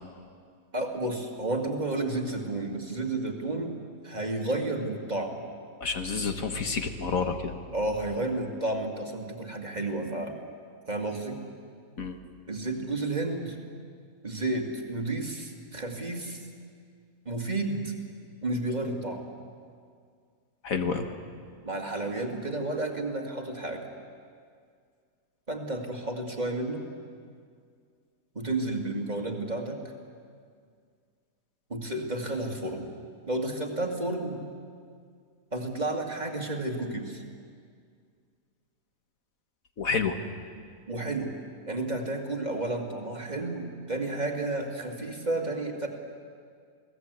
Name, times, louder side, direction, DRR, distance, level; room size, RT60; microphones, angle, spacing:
voice 1, 0.7-3.8 4.0-5.4 7.7-10.4 10.9-11.4 12.5-13.6 14.2-16.4 17.3-17.9 18.4-19.3 21.6-23.9 25.5-26.9 28.3-29.8 31.7-32.9 33.3-34.4 35.5-37.2 40.9-41.3 41.7-45.9, right 2 dB, 25° right, 2 dB, 2.3 m, -31 dB
voice 2, 5.8-7.5 12.0-12.2 20.6-21.1 39.8-40.2, left 5 dB, 60° left, 6 dB, 1.8 m, -29 dB
28.0 x 18.5 x 8.1 m, 2.1 s
omnidirectional pair, 1.6 m